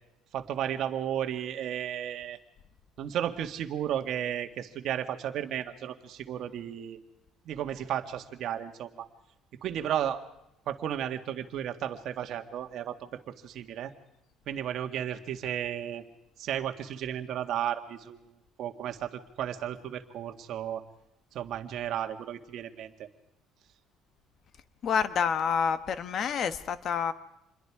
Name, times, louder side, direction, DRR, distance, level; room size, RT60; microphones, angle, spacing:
voice 1, 0.3-2.4 3.0-7.0 7.5-9.1 9.6-10.2 10.7-13.9 14.5-16.0 16.4-18.3 18.6-20.8 21.3-23.1, right 10 dB, 55° right, 7 dB, 1.9 m, -34 dB
voice 2, 24.8-27.1, left 7 dB, 45° left, 13 dB, 1.3 m, -28 dB
27.0 x 22.0 x 4.9 m, 0.84 s
cardioid pair, 145°, 0 cm